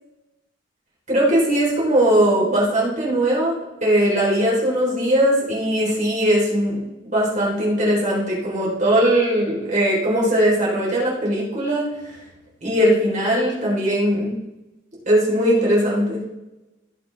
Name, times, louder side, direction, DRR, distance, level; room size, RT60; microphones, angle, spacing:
voice 1, 1.1-3.5 3.8-12.2 12.6-14.3 15.1-16.2, right 1 dB, 40° right, -5 dB, 3.9 m, -19 dB
17.0 x 6.8 x 3.4 m, 1.0 s
head